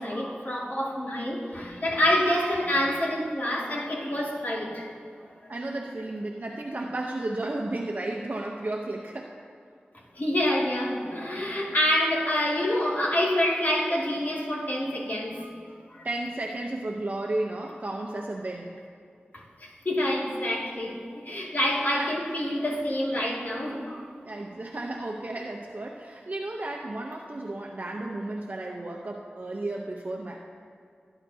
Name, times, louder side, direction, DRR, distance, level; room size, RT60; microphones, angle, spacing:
voice 1, 0.0-4.9 10.2-15.5 15.9-16.1 19.3-24.0, left 1 dB, 50° left, -4 dB, 2.2 m, -27 dB
voice 2, 5.5-9.4 16.0-18.8 21.9-22.1 24.2-30.4, right 2 dB, 45° right, 0 dB, 0.7 m, -33 dB
17.0 x 9.8 x 2.8 m, 2.3 s
wide cardioid pair, 60°, 4 cm